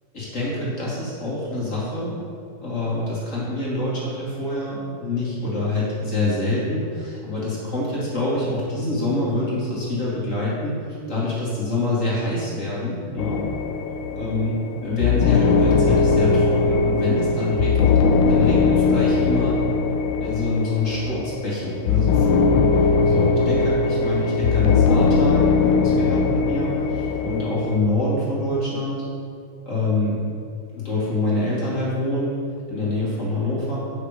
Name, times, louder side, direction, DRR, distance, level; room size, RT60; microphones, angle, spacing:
voice 1, 0.1-2.2 2.6-13.4 14.1-18.0 18.3-19.6 20.2-29.0 29.7-30.2 30.7-32.4 32.7-33.8, left 2 dB, 35° left, -7 dB, 2.6 m, -25 dB
sound 1, 13.2-27.8, left 4 dB, 75° left, 1.2 m, -20 dB
8.6 x 6.6 x 4.9 m, 2.3 s
omnidirectional pair, 2.4 m